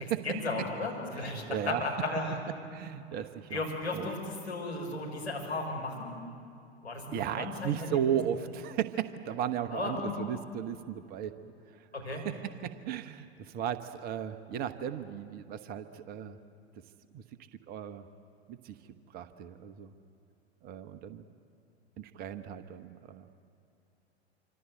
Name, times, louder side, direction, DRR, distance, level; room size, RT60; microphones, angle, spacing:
voice 1, 0.2-2.4 3.5-6.2 6.8-8.2 9.7-10.3 11.9-12.3, left 2 dB, 80° left, -1 dB, 6.3 m, -35 dB
voice 2, 1.1-1.8 2.7-3.6 3.9-4.1 7.1-11.3 12.2-16.4 17.1-17.2 17.7-18.1 18.5-18.7 19.1-19.9 20.6-21.3 22.0-23.3, right 9 dB, 30° right, 10 dB, 1.1 m, -35 dB
26.5 x 25.5 x 8.1 m, 2.6 s
figure-of-eight pair, 95°, 32 cm